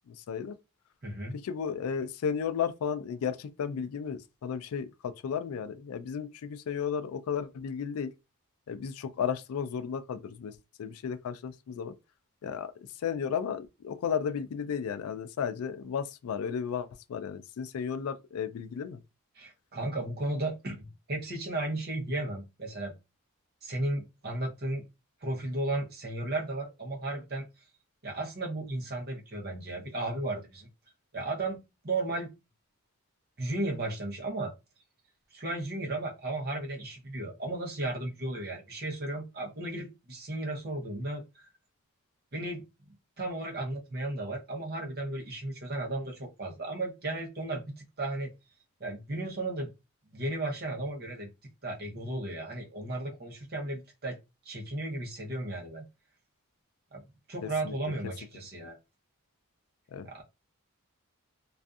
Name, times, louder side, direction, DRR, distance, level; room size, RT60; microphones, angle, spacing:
voice 1, 0.1-0.5 1.3-8.1 8.7-10.5 10.8-11.9 12.4-12.7 13.0-19.0 57.4-57.7 59.9-60.1, left 7 dB, 80° left, 0.3 m, -34 dB
voice 2, 1.0-1.4 19.4-22.9 23.6-24.8 25.2-27.5 28.0-30.7 31.1-31.6 31.8-32.3 33.4-34.5 35.3-41.5 42.3-42.7 43.2-48.3 48.8-49.7 50.1-51.3 51.6-54.2 54.4-55.9 56.9-57.0 57.3-58.8 60.0-60.2, right 2 dB, 45° right, 0.7 m, -34 dB
2.5 x 2.4 x 2.3 m
head